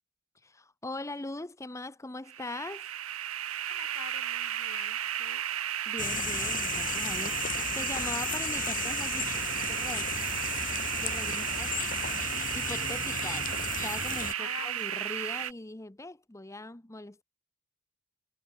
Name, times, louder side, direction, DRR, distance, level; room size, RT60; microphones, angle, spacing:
voice 1, 0.4-2.9 5.9-10.3 10.9-11.7 12.5-17.2, left 2 dB, 15° left, 0.8 m, -41 dB
sound 1, 2.3-15.5, right 11 dB, 70° right, 1.8 m, -33 dB
voice 2, 3.7-5.4 11.2-11.6 14.4-15.1, left 6 dB, 85° left, 2.4 m, -46 dB
sound 2, 6.0-14.3, left 7 dB, 40° left, 1.4 m, -35 dB
head